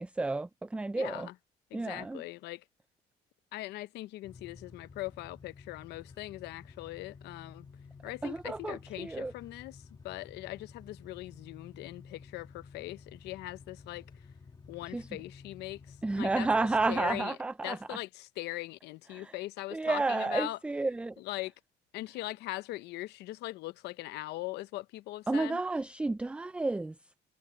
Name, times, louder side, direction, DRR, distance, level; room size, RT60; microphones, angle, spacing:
voice 1, 0.0-1.3 1.7-2.2 8.2-9.3 14.9-15.1 16.0-18.0 19.1-19.3 19.7-21.2 25.3-27.0, right 3 dB, 5° right, 0.3 m, -31 dB
voice 2, 0.9-1.3 1.7-2.6 3.5-7.7 8.0-14.1 14.7-16.5 16.9-17.4 17.6-20.6 21.2-21.5 21.9-25.6, left 17 dB, 85° left, 0.8 m, -40 dB
sound 1, 4.2-17.2, left 5 dB, 25° left, 1.5 m, -52 dB
cardioid pair, 110°, 17 cm